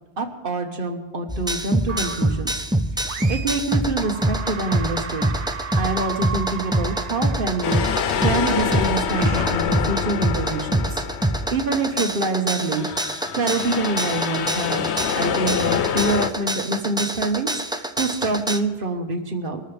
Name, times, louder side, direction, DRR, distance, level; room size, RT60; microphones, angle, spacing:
voice 1, 0.2-2.5 3.1-5.2 5.8-11.0 11.5-12.9 13.3-19.6, right 2 dB, 50° right, 5 dB, 1.5 m, -26 dB
sound 1, 1.3-18.6, right 1 dB, 5° right, 0.3 m, -25 dB
sound 2, 1.9-2.5 3.0-3.7 4.0-10.4, right 6 dB, 90° right, 1.3 m, -35 dB
sound 3, 7.6-12.2 12.6-16.3, left 8 dB, 80° left, 0.9 m, -26 dB
24.0 x 13.0 x 3.4 m, 1.2 s
omnidirectional pair, 1.1 m